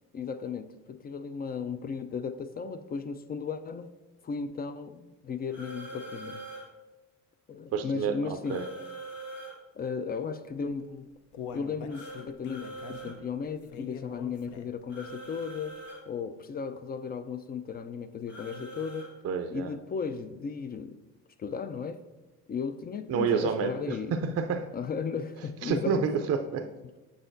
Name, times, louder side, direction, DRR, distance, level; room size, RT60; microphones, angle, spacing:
voice 1, 0.1-3.9 4.2-6.4 7.5-8.9 9.7-11.1 11.5-15.8 16.1-19.1 19.5-21.0 21.4-22.0 22.5-24.2 24.7-26.1, left 5 dB, 30° left, 10 dB, 0.4 m, -35 dB
sound 1, 5.5-6.7 8.4-9.5 11.9-13.2 14.9-16.0 18.3-19.1, right 2 dB, 90° left, 1.5 m, -43 dB
voice 2, 7.7-8.7 19.2-19.7 23.1-24.7 25.6-26.7, right 6 dB, 50° right, 7 dB, 0.5 m, -29 dB
Human voice, 10.7-14.9 15.3-15.4 15.9-16.0, left 7 dB, 65° left, 0.7 m, -44 dB
6.9 x 6.4 x 2.6 m, 1.1 s
supercardioid pair, 75°, 33 cm